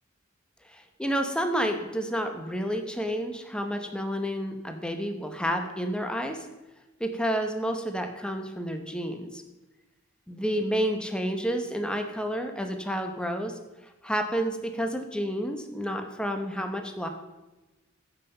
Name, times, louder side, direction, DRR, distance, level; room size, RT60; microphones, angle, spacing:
voice 1, 0.7-6.5 7.0-9.4 10.3-13.5 13.8-17.1, equal, 5° left, 5 dB, 0.9 m, -30 dB
15.0 x 5.8 x 5.4 m, 1.1 s
head